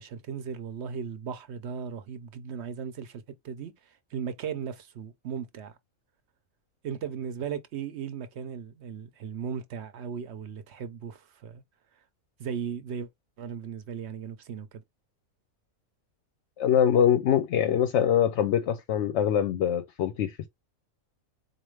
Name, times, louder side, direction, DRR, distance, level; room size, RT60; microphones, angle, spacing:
voice 1, 0.0-5.8 6.8-11.6 12.4-13.1 13.4-14.8, right 7 dB, 60° right, 0.8 m, -37 dB
voice 2, 16.6-20.5, left 9 dB, 65° left, 0.8 m, -24 dB
4.3 x 2.4 x 3.1 m
omnidirectional pair, 1.4 m